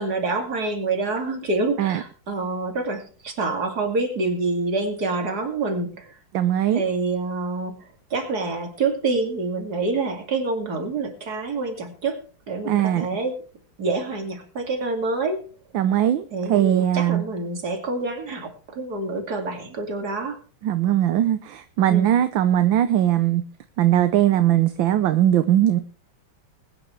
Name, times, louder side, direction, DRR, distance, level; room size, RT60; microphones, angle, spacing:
voice 1, 0.0-6.1 6.7-12.2 12.5-13.4 13.8-15.4 16.3-20.4 21.9-22.1, right 3 dB, 50° right, 3.0 m, -27 dB
voice 2, 6.3-6.8 12.6-13.1 15.7-17.2 20.6-23.4 23.8-25.8, right 11 dB, 70° right, 1.5 m, -20 dB
21.5 x 10.0 x 3.3 m
omnidirectional pair, 2.2 m